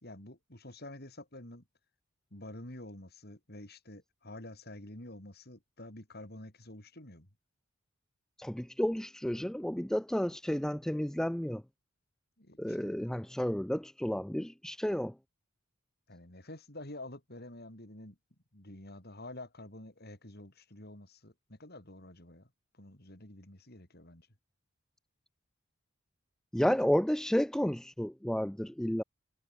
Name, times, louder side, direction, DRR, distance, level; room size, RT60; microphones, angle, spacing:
voice 1, 0.0-1.6 2.3-7.3 12.4-13.0 16.1-18.2 18.5-22.5 22.7-24.3, left 1 dB, 50° left, 5.3 m, -48 dB
voice 2, 8.4-11.6 12.6-15.1 26.5-29.0, equal, 5° left, 0.3 m, -31 dB
head